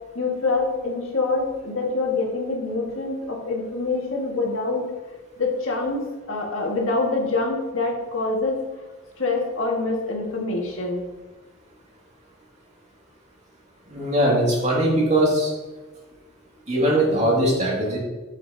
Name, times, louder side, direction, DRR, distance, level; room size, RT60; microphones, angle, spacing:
voice 1, 0.1-4.8 5.4-8.6 9.2-11.1, left 3 dB, 70° left, -1 dB, 1.9 m, -25 dB
voice 2, 13.9-15.5 16.7-18.0, right 1 dB, 35° right, -3 dB, 2.4 m, -20 dB
9.0 x 7.3 x 2.9 m, 1.2 s
head